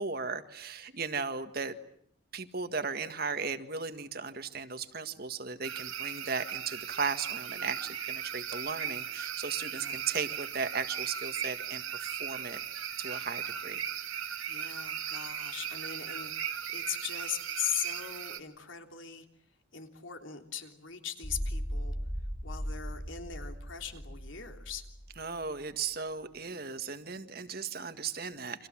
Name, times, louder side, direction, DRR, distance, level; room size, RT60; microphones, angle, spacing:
voice 1, 0.0-1.8 2.3-12.6 13.0-13.8 25.2-28.7, right 5 dB, 45° right, 9 dB, 1.8 m, -36 dB
sound 1, 5.6-18.4, right 9 dB, 85° right, 2.3 m, -37 dB
voice 2, 9.7-10.1 14.4-19.3 19.7-21.9 22.4-24.9, left 9 dB, 70° left, 5 dB, 3.4 m, -39 dB
sound 2, 21.2-25.4, equal, 10° left, 3.4 m, -38 dB
30.0 x 26.0 x 7.5 m, 0.65 s
head